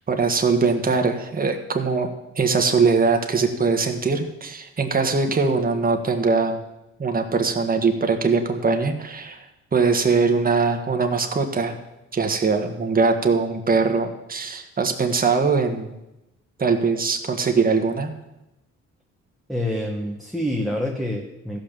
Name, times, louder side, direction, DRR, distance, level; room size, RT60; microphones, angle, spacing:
voice 1, 0.1-2.1 2.3-6.6 7.0-9.4 9.7-11.7 12.1-15.9 16.6-18.1, right 4 dB, 30° right, 5 dB, 1.5 m, -21 dB
voice 2, 19.5-21.6, left 1 dB, ahead, -1 dB, 1.4 m, -27 dB
14.5 x 5.9 x 6.8 m, 0.95 s
cardioid pair, 90°, 30 cm